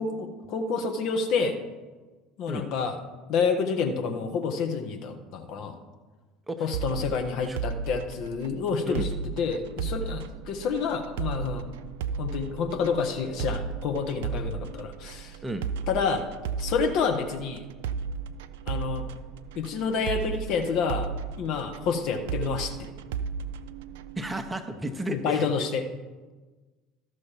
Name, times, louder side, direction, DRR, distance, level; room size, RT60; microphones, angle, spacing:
voice 1, 0.0-1.6 2.4-3.0 3.3-5.8 6.6-9.1 9.4-11.6 12.2-15.4 15.9-16.2 16.6-17.6 18.7-19.0 19.5-21.1 21.4-22.9 25.1-25.8, left 5 dB, 50° left, 5 dB, 1.1 m, -28 dB
sound 1, 6.7-24.5, right 6 dB, 60° right, 0.4 m, -35 dB
voice 2, 24.2-25.5, right 1 dB, 15° right, 8 dB, 0.8 m, -33 dB
13.0 x 6.3 x 4.5 m, 1.3 s
figure-of-eight pair, 65°, 0 cm